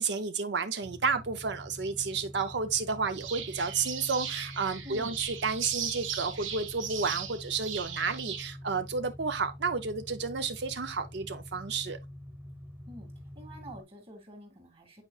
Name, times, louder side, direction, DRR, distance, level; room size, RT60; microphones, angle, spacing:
voice 1, 0.0-12.0, right 5 dB, 60° right, 0.5 m, -31 dB
sound 1, 0.8-13.8, equal, 10° right, 1.1 m, -46 dB
sound 2, 3.1-8.4, right 8 dB, 80° right, 1.2 m, -38 dB
voice 2, 4.8-5.2 12.9-13.1 13.3-15.0, equal, 30° right, 2.2 m, -47 dB
8.8 x 4.9 x 2.3 m
head